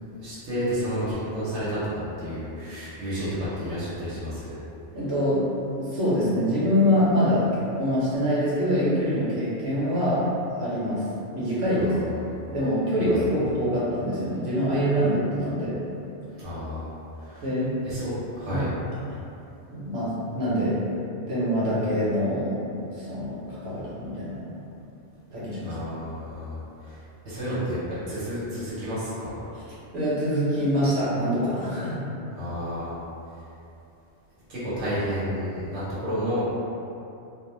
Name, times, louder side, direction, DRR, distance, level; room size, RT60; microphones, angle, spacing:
voice 1, 0.2-4.6 11.8-12.3 13.1-13.2 16.4-16.9 17.2-17.5 17.8-18.7 25.6-26.6 26.8-27.0 27.2-29.4 32.4-32.9 34.5-36.4, equal, 90° right, -11 dB, 1.1 m, -31 dB
voice 2, 4.9-5.4 5.8-10.2 10.5-11.0 11.3-11.9 12.5-15.8 17.4-17.7 18.5-18.6 19.1-19.2 19.7-20.8 21.3-24.5 25.3-25.7 29.5-32.0, equal, 70° right, -10 dB, 1.1 m, -25 dB
2.5 x 2.1 x 3.1 m, 2.8 s
omnidirectional pair, 1.2 m